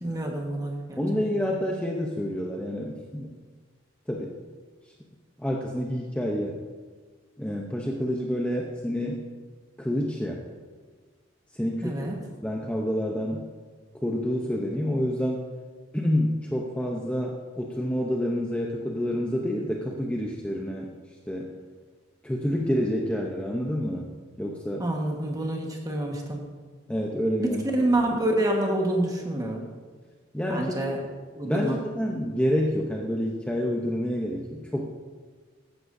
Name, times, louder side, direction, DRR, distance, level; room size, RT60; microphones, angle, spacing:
voice 1, 0.0-1.0 11.8-12.2 24.8-26.4 27.4-29.6 30.5-31.0 31.4-31.7, right 1 dB, 20° right, 1 dB, 1.4 m, -27 dB
voice 2, 1.0-3.3 4.1-4.4 5.4-6.6 7.4-9.3 9.8-10.4 11.5-12.0 12.4-13.4 14.0-15.4 15.9-20.9 21.3-21.5 22.2-24.1 24.4-24.9 26.9-27.6 30.3-30.7 31.5-34.9, equal, 5° left, -1 dB, 0.7 m, -28 dB
14.5 x 11.0 x 2.7 m, 1.5 s
head